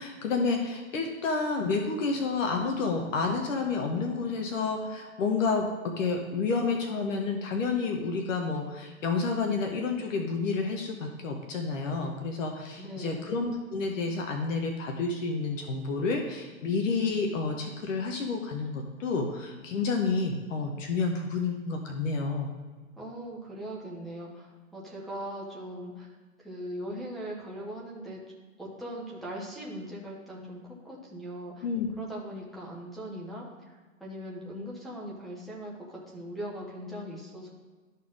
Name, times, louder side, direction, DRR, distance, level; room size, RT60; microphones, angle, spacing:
voice 1, 0.0-5.7 6.0-22.5 31.6-31.9, left 4 dB, 65° left, 3 dB, 1.3 m, -30 dB
voice 2, 12.8-13.3 23.0-26.1 26.4-28.2 28.6-31.7 32.0-37.5, equal, ahead, -6 dB, 0.4 m, -40 dB
12.5 x 4.3 x 3.8 m, 1.4 s
hypercardioid pair, 140°, 42 cm